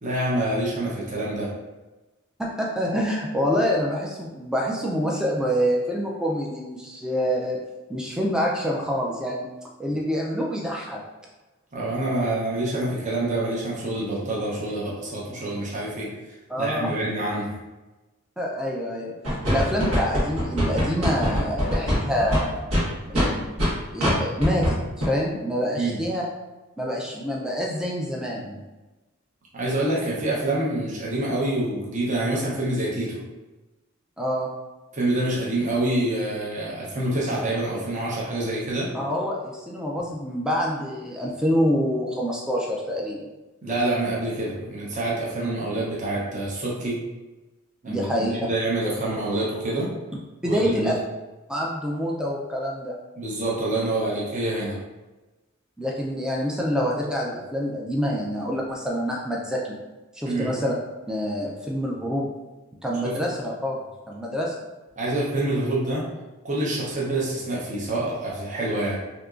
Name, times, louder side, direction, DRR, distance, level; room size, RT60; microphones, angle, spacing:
voice 1, 0.0-1.5 9.9-10.0 11.7-16.1 16.6-17.5 25.7-26.0 29.5-33.2 34.9-38.9 43.6-47.0 47.8-49.9 50.4-51.0 53.2-54.8 60.2-60.5 63.0-63.2 65.0-66.1 66.4-69.0, right 1 dB, 35° right, -5 dB, 0.7 m, -26 dB
voice 2, 2.4-7.6 7.9-9.5 9.8-11.0 16.5-16.9 18.4-19.1 19.5-22.6 23.1-23.5 23.9-26.2 26.8-28.6 34.2-34.5 38.9-43.2 47.9-48.5 50.4-50.9 51.5-52.9 55.8-59.6 60.1-60.7 61.1-62.3 62.8-63.8 64.1-64.5, equal, 5° right, -3 dB, 0.3 m, -26 dB
sound 1, 19.2-23.7 24.0-24.1 24.4-24.7 25.0-25.1, equal, 85° right, 1.3 m, -23 dB
3.6 x 2.8 x 2.4 m, 1.1 s
head